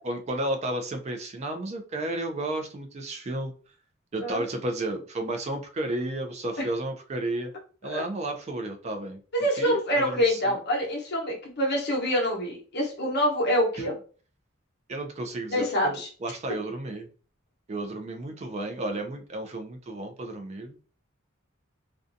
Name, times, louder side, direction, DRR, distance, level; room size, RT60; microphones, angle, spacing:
voice 1, 0.0-3.5 4.1-7.5 7.8-9.2 9.6-10.6 13.8-13.9 14.9-17.1 17.7-20.8, right 1 dB, 30° right, 5 dB, 0.4 m, -32 dB
voice 2, 9.3-13.9 15.5-16.1, equal, 55° left, 0 dB, 0.8 m, -26 dB
2.5 x 2.2 x 2.6 m, 0.39 s
head